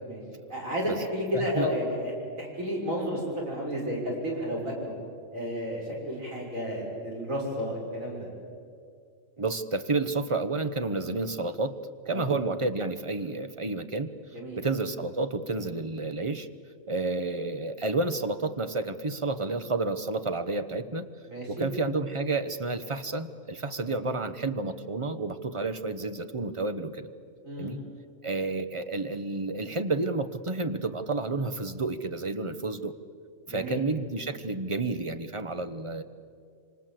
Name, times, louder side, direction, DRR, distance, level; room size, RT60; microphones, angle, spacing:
voice 1, 0.5-2.1 2.4-4.9 5.3-8.3 12.1-12.3 14.3-14.6 21.3-21.7 27.4-27.8 33.5-33.8, equal, 85° right, -3 dB, 6.8 m, -32 dB
voice 2, 1.3-1.7 9.4-11.8 12.1-14.1 14.6-16.5 16.9-21.1 21.5-27.1 27.6-27.8 28.2-32.9 33.5-36.0, right 3 dB, 25° right, 10 dB, 1.0 m, -30 dB
26.5 x 25.5 x 7.7 m, 2.3 s
omnidirectional pair, 1.4 m